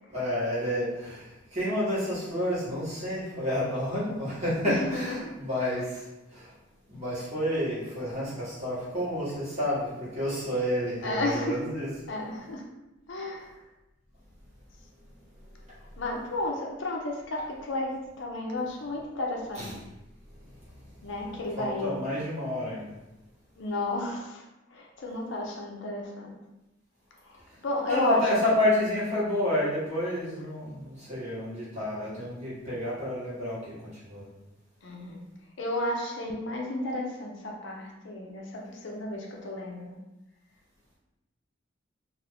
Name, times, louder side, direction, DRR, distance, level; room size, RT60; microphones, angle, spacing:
voice 1, 0.1-6.0 6.3-6.5 6.9-11.9 19.5-19.7 21.6-22.9 27.9-33.7 34.0-34.2, left 1 dB, 35° right, -9 dB, 1.1 m, -29 dB
voice 2, 4.6-5.3 11.0-11.6 12.1-12.6 13.1-13.5 16.0-19.6 21.0-22.0 23.6-24.4 24.7-26.3 27.2-28.2 34.8-35.2 35.6-40.0, left 1 dB, 60° left, 0 dB, 0.5 m, -32 dB
2.4 x 2.4 x 3.4 m, 0.99 s
head